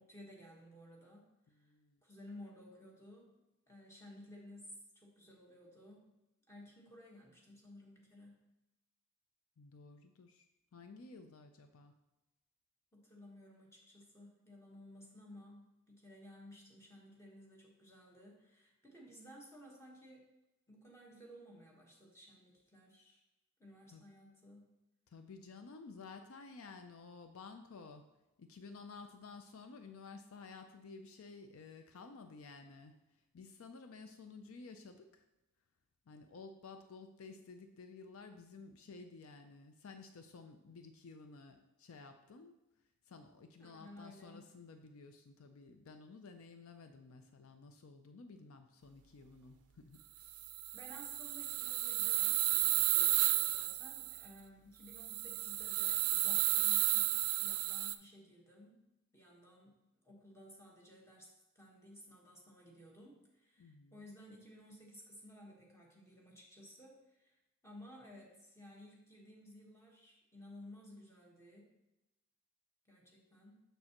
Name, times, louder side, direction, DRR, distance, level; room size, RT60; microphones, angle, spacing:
voice 1, 0.0-1.7 2.0-3.3 3.7-6.1 6.5-8.5 12.9-20.3 20.7-23.2 23.6-24.7 43.6-44.5 50.7-58.8 59.1-71.7 72.8-73.6, left 1 dB, 10° left, -2 dB, 1.3 m, -56 dB
voice 2, 1.6-2.0 9.6-11.9 23.9-24.0 25.1-28.0 28.4-32.9 33.3-35.2 36.1-42.6 43.1-50.5 63.6-64.1, left 4 dB, 65° left, 7 dB, 0.5 m, -53 dB
sound 1, 50.3-54.3 54.9-58.0, right 16 dB, 90° right, 0.4 m, -33 dB
6.7 x 6.4 x 2.9 m, 0.98 s
head